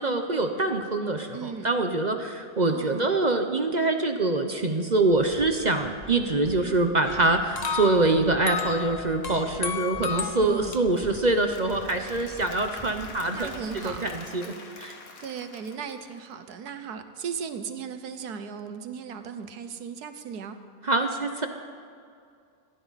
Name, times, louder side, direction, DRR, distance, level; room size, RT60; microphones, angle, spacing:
voice 1, 0.0-13.5 13.8-14.9 20.8-21.5, right 2 dB, 35° right, 6 dB, 0.8 m, -25 dB
voice 2, 1.3-1.8 2.7-3.1 10.4-10.8 13.3-14.1 15.2-20.6, right 6 dB, 80° right, 9 dB, 1.5 m, -36 dB
sound 1, 5.1-14.1, equal, ahead, 1.6 m, -46 dB
sound 2, 7.0-10.8, left 5 dB, 35° left, 0.7 m, -33 dB
Applause / Crowd, 10.7-16.7, left 3 dB, 65° left, 1.9 m, -46 dB
21.0 x 15.5 x 4.2 m, 2.3 s
omnidirectional pair, 1.6 m